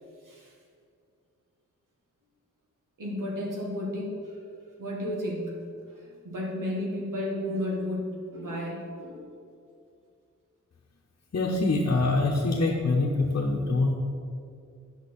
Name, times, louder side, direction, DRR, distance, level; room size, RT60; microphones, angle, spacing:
voice 1, 3.0-4.4 4.8-9.3, left 1 dB, 90° right, -3 dB, 1.9 m, -33 dB
voice 2, 11.3-13.9, left 2 dB, 50° left, -2 dB, 0.9 m, -24 dB
10.5 x 6.1 x 4.2 m, 2.4 s
wide cardioid pair, 120°, 31 cm